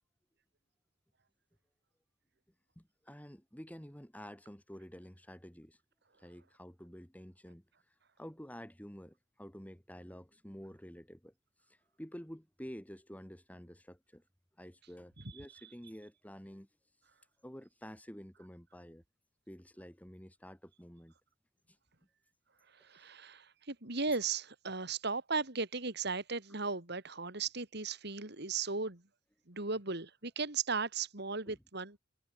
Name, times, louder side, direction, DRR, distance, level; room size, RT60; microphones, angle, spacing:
voice 1, 2.8-5.8 6.2-7.6 8.2-11.3 12.0-14.2 14.6-16.7 17.4-19.0 19.5-21.1 31.5-31.6, equal, 10° left, 5.3 m, -50 dB
voice 2, 22.8-29.0 29.5-32.0, right 4 dB, 60° right, 3.5 m, -36 dB
head